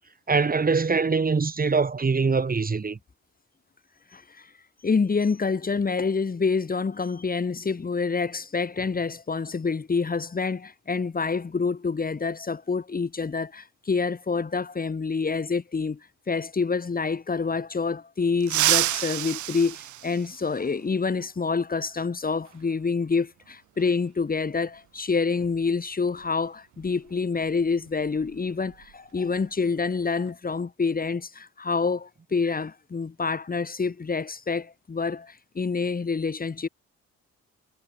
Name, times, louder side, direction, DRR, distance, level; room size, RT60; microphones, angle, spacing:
voice 1, 0.3-3.0, right 4 dB, 30° right, 3.1 m, -23 dB
voice 2, 4.1-4.5 4.8-16.0 16.3-36.7, left 4 dB, 30° left, 2.3 m, -27 dB
sound 1, 18.4-20.8 22.5-22.6 23.8-23.9 25.5-25.7 26.0-26.3 26.7-28.9 29.2-29.4 29.9-30.3, right 14 dB, 75° right, 1.1 m, -29 dB
cardioid pair, 90°, 30 cm